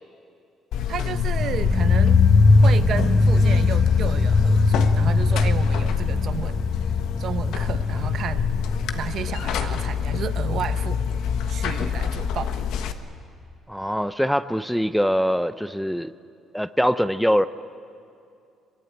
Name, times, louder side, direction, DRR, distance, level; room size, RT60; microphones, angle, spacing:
Buzz, 0.7-12.9, left 7 dB, 80° left, 1.3 m, -27 dB
voice 1, 0.9-2.2 2.6-6.6 7.2-8.5 8.9-11.2 11.5-12.9, right 8 dB, 55° right, 11 dB, 1.0 m, -32 dB
sound 1, 1.1-12.1 12.3-12.4, left 3 dB, 40° left, 2.6 m, -21 dB
voice 2, 13.7-16.1 16.5-17.5, equal, ahead, 13 dB, 0.6 m, -23 dB
23.0 x 22.5 x 8.8 m, 2.5 s
cardioid pair, 120°, 0 cm